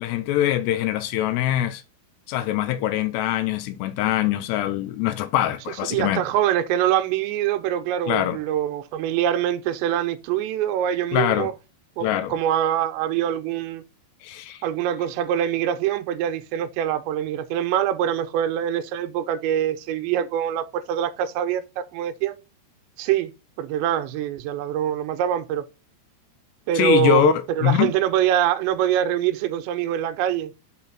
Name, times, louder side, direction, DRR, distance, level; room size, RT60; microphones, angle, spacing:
voice 1, 0.0-1.8 2.3-6.2 8.1-8.4 11.1-11.5 12.0-12.3 14.2-14.6 26.8-27.3 27.6-27.9, left 12 dB, 80° left, 2.6 m, -23 dB
voice 2, 5.9-11.5 12.0-13.8 14.6-22.4 23.0-23.3 23.6-25.7 26.7-30.6, right 10 dB, 85° right, 2.9 m, -24 dB
5.8 x 4.6 x 5.7 m
omnidirectional pair, 5.1 m